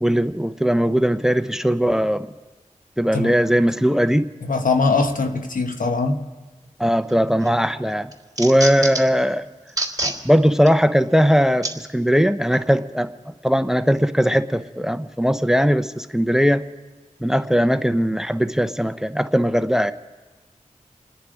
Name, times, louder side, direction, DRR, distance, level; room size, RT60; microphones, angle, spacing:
voice 1, 0.0-2.3 3.0-4.3 6.8-8.1 8.4-9.5 10.2-16.6 17.2-19.9, equal, 5° right, 0.6 m, -19 dB
voice 2, 4.4-6.2, left 3 dB, 85° left, 1.3 m, -21 dB
sound 1, 7.1-7.5 7.9-9.2 9.7-10.2 10.7-10.8 11.6-11.7 12.5-12.7, right 2 dB, 30° right, 2.9 m, -26 dB
28.5 x 10.0 x 5.0 m
wide cardioid pair, 70°, 14 cm